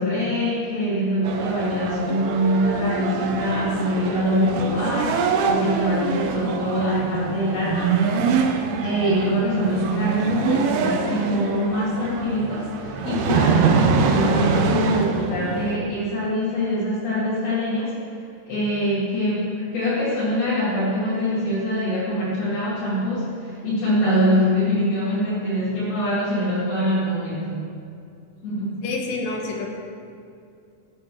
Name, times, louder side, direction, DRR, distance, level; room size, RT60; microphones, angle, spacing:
voice 1, 0.0-7.9 8.8-18.0 18.5-27.6 28.4-28.8, equal, 55° left, -12 dB, 4.3 m, -24 dB
sound 1, 1.2-15.8, right 5 dB, 75° right, 2.3 m, -24 dB
voice 2, 28.8-29.7, left 3 dB, 75° left, 1 dB, 3.3 m, -28 dB
15.5 x 8.6 x 4.9 m, 2.4 s
omnidirectional pair, 5.4 m